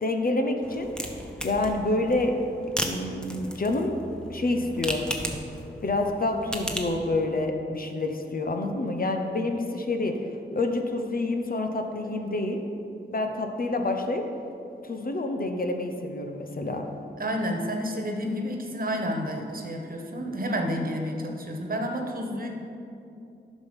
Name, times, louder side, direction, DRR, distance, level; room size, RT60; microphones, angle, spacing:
voice 1, 0.0-0.9 1.4-2.3 2.9-4.0 4.3-5.0 5.8-12.6 13.1-14.2 14.8-16.9, left 2 dB, 50° left, 4 dB, 1.0 m, -28 dB
sound 1, 0.6-7.0, equal, 5° left, 1.1 m, -36 dB
voice 2, 17.2-22.5, equal, 50° right, 2 dB, 1.4 m, -30 dB
10.5 x 6.3 x 5.4 m, 2.7 s
cardioid pair, 70°, 19 cm